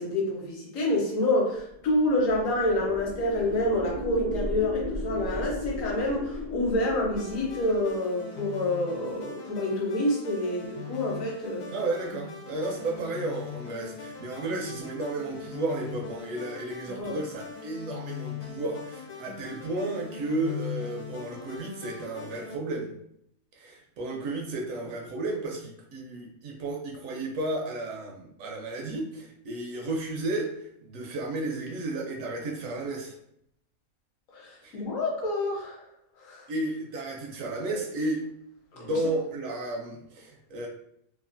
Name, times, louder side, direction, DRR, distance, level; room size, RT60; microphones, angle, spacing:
voice 1, 0.0-11.7 17.0-17.1 34.3-35.8 36.2-36.5 38.7-38.9, left 1 dB, 65° left, -2 dB, 1.1 m, -28 dB
sound 1, 1.8-8.0, left 2 dB, 25° left, 0.4 m, -36 dB
sound 2, 7.1-22.6, left 7 dB, 85° left, 1.1 m, -41 dB
voice 2, 11.7-22.9 23.5-33.2 34.6-34.8 36.5-38.2 38.8-40.7, right 2 dB, 70° right, 0 dB, 0.9 m, -33 dB
2.9 x 2.4 x 2.5 m, 0.74 s
omnidirectional pair, 1.6 m